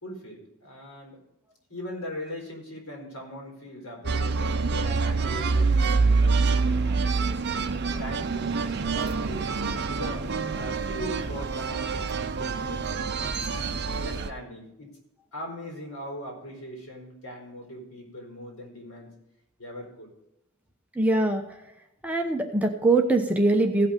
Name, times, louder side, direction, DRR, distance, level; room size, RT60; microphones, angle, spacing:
voice 1, 0.0-1.2 1.7-7.0 8.0-8.6 8.9-9.4 9.9-13.1 13.4-15.0 15.3-19.1 19.6-20.1, equal, 75° left, 0 dB, 4.4 m, -40 dB
sound 1, 4.0-14.3, right 4 dB, 50° right, 0.6 m, -26 dB
voice 2, 21.0-21.4 22.0-23.9, right 2 dB, 5° right, 3 dB, 0.9 m, -22 dB
16.5 x 5.8 x 5.2 m, 0.87 s
head